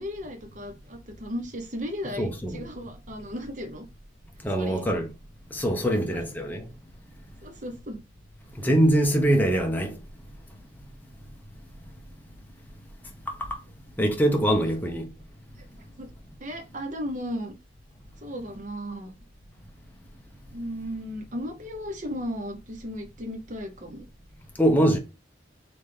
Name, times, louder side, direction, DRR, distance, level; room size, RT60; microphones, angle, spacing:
voice 1, 0.0-3.8 4.6-4.8 6.0-6.2 7.4-8.0 10.5-10.6 16.0-16.1 16.4-17.5 18.2-19.2 20.5-24.0, equal, 40° right, 0.9 m, -35 dB
voice 2, 2.2-2.6 4.4-5.1 5.5-6.6 8.6-10.0 14.0-15.1 24.6-25.0, right 1 dB, 10° left, 0.9 m, -23 dB
4.0 x 3.5 x 3.3 m
head